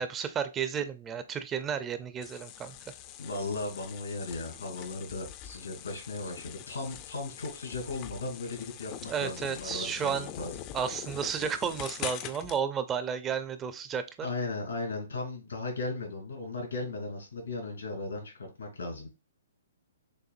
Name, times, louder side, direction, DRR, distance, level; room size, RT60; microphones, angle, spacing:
voice 1, 0.0-2.7 9.1-10.3 10.7-14.3, right 7 dB, 20° right, 0.5 m, -32 dB
sound 1, 2.2-12.6, left 11 dB, 35° left, 0.5 m, -43 dB
voice 2, 3.2-10.6 14.2-19.1, left 3 dB, 80° left, 2.7 m, -36 dB
6.6 x 2.6 x 2.5 m
hypercardioid pair, 130°, 0 cm